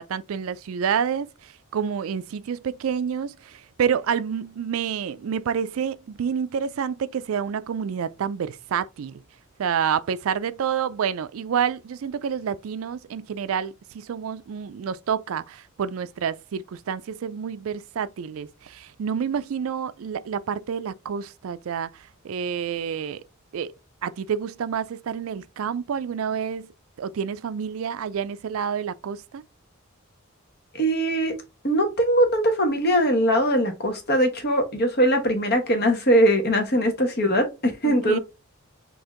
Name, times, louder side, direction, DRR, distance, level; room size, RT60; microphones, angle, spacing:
voice 1, 0.0-9.2 9.6-23.2 23.5-23.7 24.0-26.7 27.0-29.4 36.8-36.9 37.8-38.2, right 7 dB, 80° right, 0.4 m, -28 dB
voice 2, 30.7-31.3 31.6-38.2, equal, 50° left, 1.3 m, -21 dB
4.4 x 2.9 x 3.6 m
head